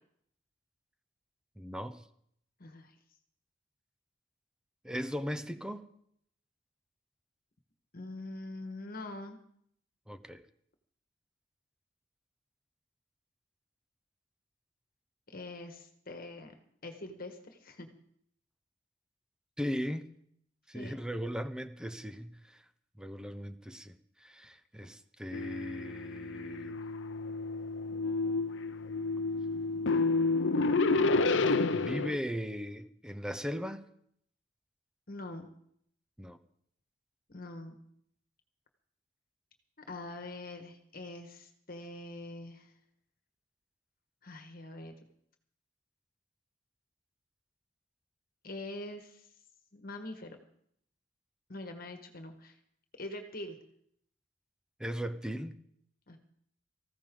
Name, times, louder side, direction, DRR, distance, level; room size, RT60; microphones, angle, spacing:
voice 1, 1.6-2.0 4.8-5.9 10.1-10.4 19.6-20.1 20.7-22.6 23.0-26.8 31.7-33.8 36.2-36.4 54.8-55.6, equal, 5° right, 0.7 m, -38 dB
voice 2, 2.6-2.9 7.9-9.4 15.3-16.5 16.8-17.9 20.7-21.0 35.1-35.5 37.3-37.8 39.9-42.7 44.2-44.9 48.4-49.3 49.7-50.4 51.5-52.6 53.0-53.6 56.1-56.2, left 2 dB, 50° left, 1.5 m, -44 dB
sound 1, 25.3-32.2, left 3 dB, 70° left, 0.7 m, -30 dB
19.0 x 15.0 x 3.8 m
head